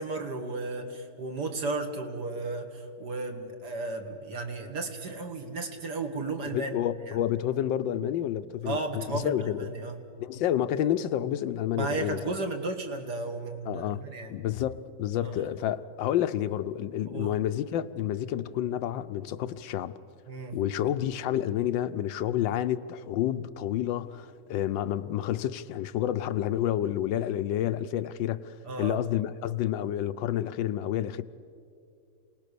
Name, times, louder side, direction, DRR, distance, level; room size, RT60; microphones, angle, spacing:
voice 1, 0.0-6.7 7.1-7.2 8.6-10.1 11.7-14.4 15.2-15.5 17.1-17.4 20.3-20.6 28.6-29.0, right 3 dB, 60° right, 2.4 m, -34 dB
voice 2, 6.5-9.7 10.2-12.2 13.7-14.0 14.3-19.9 20.5-31.2, left 11 dB, 90° left, 1.4 m, -29 dB
27.5 x 19.0 x 6.9 m
omnidirectional pair, 2.0 m